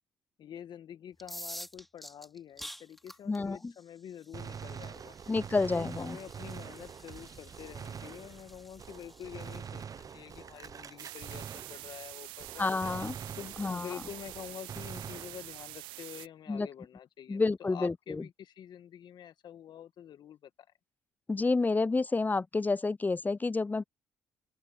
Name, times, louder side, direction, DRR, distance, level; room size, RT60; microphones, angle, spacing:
voice 1, 0.4-5.2 5.7-12.7 13.3-20.5, left 9 dB, 60° left, 1.6 m, -47 dB
sound 1, 1.1-12.9, equal, ahead, 2.9 m, -51 dB
voice 2, 3.3-3.7 5.3-6.2 12.6-13.1 13.6-13.9 16.5-16.7 17.3-18.3 21.3-23.9, left 3 dB, 20° left, 0.5 m, -29 dB
Gunshot gunfire, 4.3-12.1 12.4-15.8, right 7 dB, 45° right, 0.8 m, -45 dB
sound 2, 11.0-16.3, right 21 dB, 80° right, 0.6 m, -46 dB
open air
hypercardioid pair, 55°, 8 cm